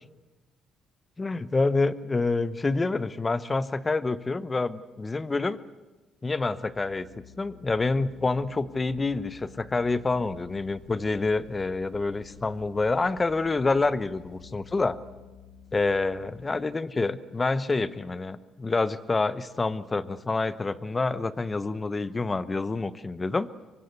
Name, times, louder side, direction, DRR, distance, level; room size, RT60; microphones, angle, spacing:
voice 1, 1.2-5.6 6.2-7.1 7.4-15.0 15.7-23.5, left 3 dB, 20° left, 16 dB, 0.9 m, -27 dB
Organ, 6.5-16.8, left 8 dB, 65° left, 5.2 m, -52 dB
sound 1, 10.1-14.5, left 4 dB, 90° left, 4.6 m, -56 dB
24.5 x 23.5 x 8.2 m, 1.2 s
cardioid pair, 115°, 0 cm